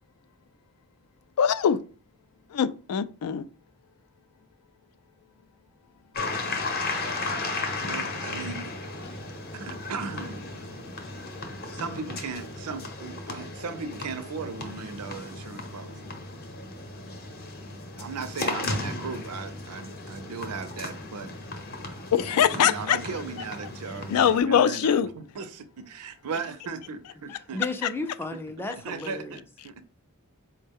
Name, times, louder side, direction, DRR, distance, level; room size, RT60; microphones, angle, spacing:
voice 1, 1.4-1.8 2.5-3.5 22.1-23.0 24.1-25.1, left 8 dB, 80° left, 0.4 m, -22 dB
sound 1, 6.1-24.4, left 2 dB, 45° left, 0.7 m, -35 dB
voice 2, 7.8-8.7 9.5-10.5 11.7-15.9 18.0-21.3 22.3-27.6 28.0-28.1 28.8-29.8, right 4 dB, 85° right, 0.5 m, -37 dB
voice 3, 27.5-29.4, left 2 dB, 10° left, 0.4 m, -34 dB
4.4 x 2.1 x 3.4 m
head